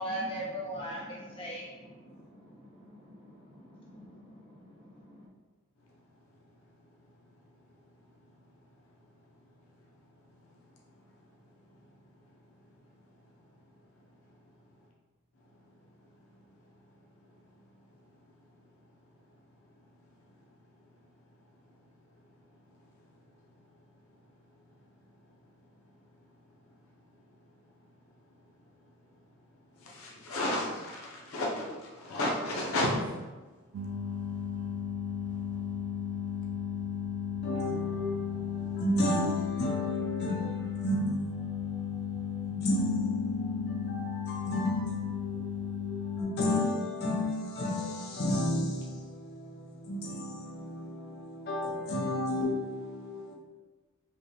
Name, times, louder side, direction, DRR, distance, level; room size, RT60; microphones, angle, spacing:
voice 1, 0.0-5.3, equal, 25° left, 0.9 m, -41 dB
voice 2, 29.8-31.7 32.0-32.9, left 1 dB, 85° left, 0.8 m, -32 dB
sound 1, 33.7-46.2, left 8 dB, 70° right, 0.4 m, -35 dB
voice 3, 37.4-53.4, left 1 dB, 50° left, 0.9 m, -33 dB
5.1 x 2.3 x 3.2 m
head